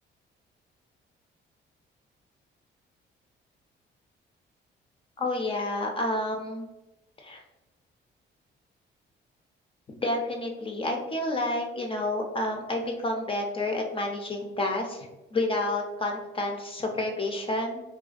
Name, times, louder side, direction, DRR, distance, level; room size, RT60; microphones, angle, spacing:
voice 1, 5.2-6.7 7.2-7.4 10.0-17.8, left 2 dB, 25° left, 2 dB, 0.4 m, -29 dB
2.3 x 2.2 x 2.4 m, 1.0 s
cardioid pair, 90°, 20 cm